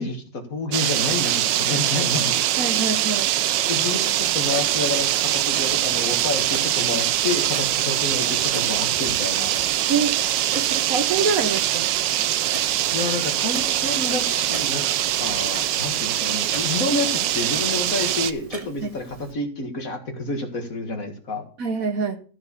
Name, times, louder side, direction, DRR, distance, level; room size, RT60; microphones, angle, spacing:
voice 1, 0.0-2.4 3.7-9.5 12.9-14.9 15.2-21.5, left 3 dB, 50° left, 4 dB, 2.2 m, -29 dB
sound 1, 0.7-18.3, right 12 dB, 80° right, 1.3 m, -23 dB
voice 2, 2.6-3.3 9.9-10.1 10.5-11.9 18.8-18.9 21.6-22.2, right 5 dB, 55° right, 8 dB, 1.2 m, -25 dB
Clock, 4.2-19.3, right 3 dB, 30° right, 0.7 m, -42 dB
14.0 x 4.8 x 6.9 m, 0.41 s
omnidirectional pair, 1.9 m